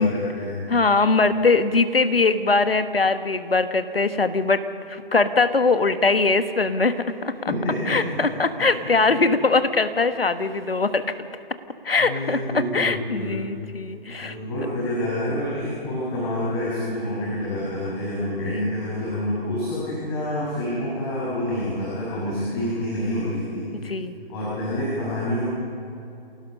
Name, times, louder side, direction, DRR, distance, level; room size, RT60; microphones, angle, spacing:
voice 1, 0.0-0.7 7.5-8.0 12.0-13.5 14.2-23.6 24.3-25.4, left 1 dB, 30° left, -8 dB, 7.0 m, -27 dB
voice 2, 0.7-7.3 7.9-11.1 11.8-14.4 18.5-18.7 23.8-24.2, left 3 dB, 70° left, 11 dB, 1.4 m, -21 dB
28.0 x 18.0 x 5.5 m, 2.8 s
figure-of-eight pair, 140°, 30 cm